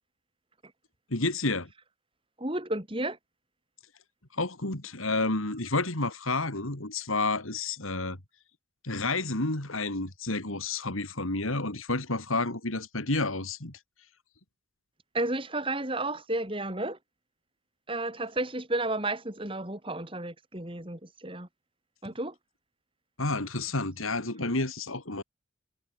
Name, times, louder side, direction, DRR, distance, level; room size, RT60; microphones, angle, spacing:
voice 1, 1.1-1.7 4.3-8.2 8.8-13.8 23.2-25.2, left 2 dB, 85° left, 4.0 m, -30 dB
voice 2, 2.4-3.2 15.1-17.0 17.9-21.5 22.0-22.3, right 2 dB, 25° right, 3.5 m, -32 dB
head